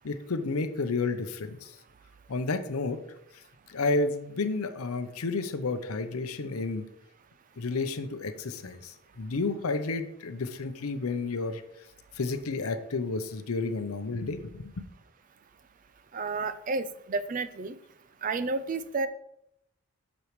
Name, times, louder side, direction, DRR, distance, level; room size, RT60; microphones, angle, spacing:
voice 1, 0.0-1.7 2.3-3.0 3.7-6.9 7.6-11.6 12.2-14.7, left 3 dB, 80° left, 9 dB, 0.7 m, -31 dB
voice 2, 16.1-17.8 18.2-19.1, right 3 dB, 35° right, 12 dB, 0.4 m, -31 dB
8.3 x 6.1 x 3.1 m, 0.79 s
head